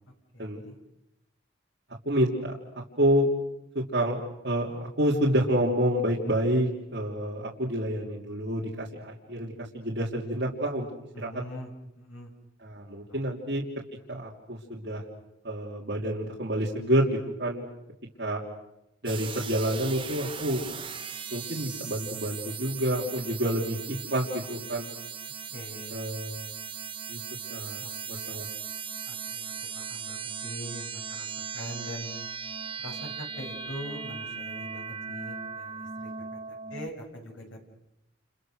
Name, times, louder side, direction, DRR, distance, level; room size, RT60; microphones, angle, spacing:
voice 1, 0.3-0.8 11.1-11.7 11.9-12.3 13.1-13.5 25.5-26.2 27.8-28.5 29.0-32.1 32.8-37.7, equal, 75° left, 2 dB, 6.6 m, -43 dB
voice 2, 2.0-2.6 3.0-3.3 3.7-10.9 11.2-11.3 12.6-13.6 14.1-15.0 15.4-17.6 18.2-18.4 19.0-20.7 21.3-24.9 25.9-26.4 27.1-27.2 27.5-27.8 28.1-28.5, equal, 55° right, -3 dB, 3.1 m, -28 dB
sound 1, 19.1-36.9, right 6 dB, 25° right, 1.1 m, -38 dB
30.0 x 29.5 x 6.4 m, 0.87 s
head